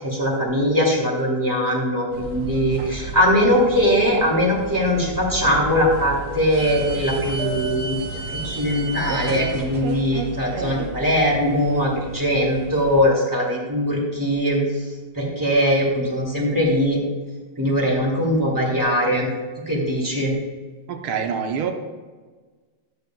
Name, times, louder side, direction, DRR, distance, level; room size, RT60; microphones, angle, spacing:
voice 1, 0.0-8.0 8.3-17.0 17.6-19.3 19.7-20.3, equal, 10° right, -3 dB, 2.4 m, -21 dB
sound 1, 2.1-13.0, right 3 dB, 55° right, 1.5 m, -32 dB
voice 2, 20.9-21.7, right 7 dB, 80° right, 5 dB, 1.8 m, -25 dB
13.0 x 8.8 x 2.3 m, 1.4 s
omnidirectional pair, 2.3 m